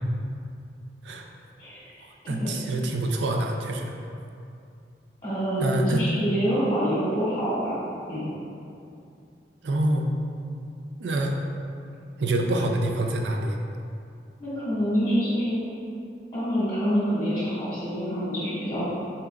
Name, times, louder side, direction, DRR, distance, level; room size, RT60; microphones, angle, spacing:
voice 1, 1.6-1.9 2.3-2.5 5.2-7.8 8.1-8.3 14.4-15.6 16.3-18.8, equal, 25° left, -12 dB, 1.4 m, -26 dB
voice 2, 2.3-3.9 5.6-6.0 9.6-10.2 11.0-11.4 12.2-13.6, right 1 dB, 80° right, 2 dB, 0.4 m, -26 dB
4.2 x 3.6 x 2.2 m, 2.5 s
head